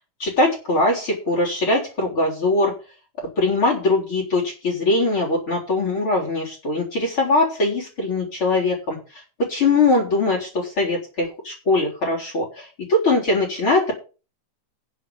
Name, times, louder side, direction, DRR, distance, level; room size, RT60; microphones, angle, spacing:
voice 1, 0.2-2.7 3.4-9.0 9.4-13.9, left 2 dB, 35° left, 1 dB, 4.5 m, -21 dB
9.9 x 7.4 x 7.1 m, 0.34 s
omnidirectional pair, 4.0 m